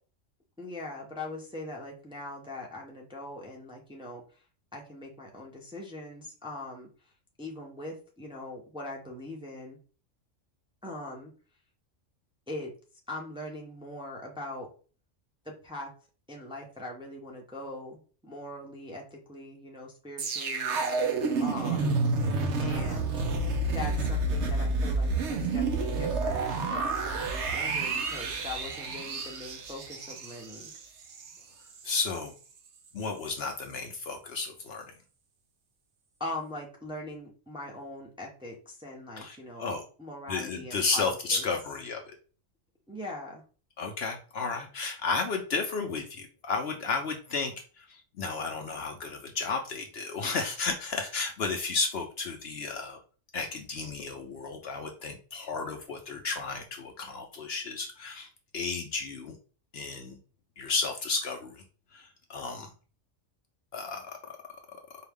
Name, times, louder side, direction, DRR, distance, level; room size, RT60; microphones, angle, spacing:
voice 1, 0.6-4.4 4.7-6.9 7.4-9.8 10.8-11.3 12.5-12.7 13.1-14.7 15.4-15.9 16.3-20.8 21.4-22.0 22.6-23.2 23.7-30.7 36.2-41.4 42.9-43.4, left 1 dB, 5° right, -1 dB, 0.6 m, -41 dB
sound 1, 20.2-31.4 31.7-31.9, right 3 dB, 65° right, 1.0 m, -29 dB
voice 2, 31.8-32.3 32.9-34.9 39.2-39.8 40.3-42.1 43.8-53.0 53.3-59.4 59.7-60.2 60.6-61.6 61.9-62.7 63.7-64.2, left 4 dB, 60° left, 4 dB, 0.8 m, -33 dB
4.7 x 2.3 x 3.5 m, 0.38 s
omnidirectional pair, 1.3 m